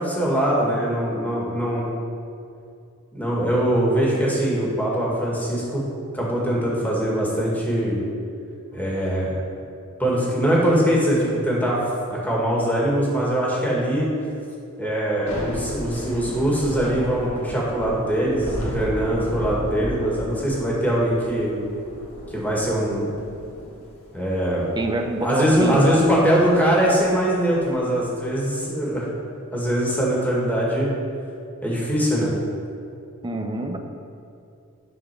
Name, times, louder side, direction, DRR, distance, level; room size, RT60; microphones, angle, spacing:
voice 1, 0.0-1.9 3.1-5.8 6.1-8.0 8.7-9.4 10.0-11.8 12.1-14.0 14.8-21.5 22.3-23.1 24.1-24.7 25.2-29.1 29.5-30.9 31.6-32.3, right 1 dB, 10° left, -5 dB, 1.9 m, -22 dB
Thunder / Rain, 15.1-28.2, equal, 70° left, 1.8 m, -36 dB
voice 2, 24.7-25.8 33.2-33.8, right 1 dB, 20° right, 4 dB, 0.6 m, -26 dB
10.5 x 4.4 x 6.0 m, 2.5 s
head